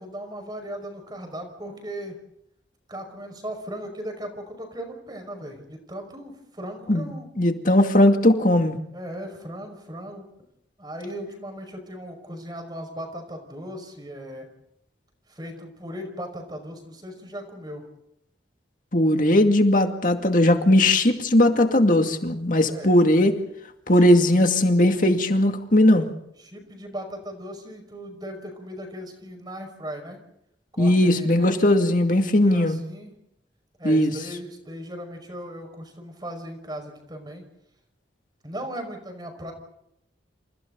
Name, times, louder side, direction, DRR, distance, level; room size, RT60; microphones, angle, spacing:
voice 1, 0.0-2.2 2.9-7.3 8.9-10.3 10.8-14.5 15.3-17.8 22.7-23.0 23.9-24.2 26.4-30.2 30.7-31.9 32.2-33.1 33.8-37.4 38.4-39.5, equal, 20° right, 5 dB, 5.5 m, -37 dB
voice 2, 7.4-8.8 18.9-23.4 23.9-26.1 30.8-32.8 33.8-34.1, left 1 dB, 45° left, 5 dB, 2.3 m, -18 dB
29.5 x 28.5 x 4.0 m, 0.78 s
head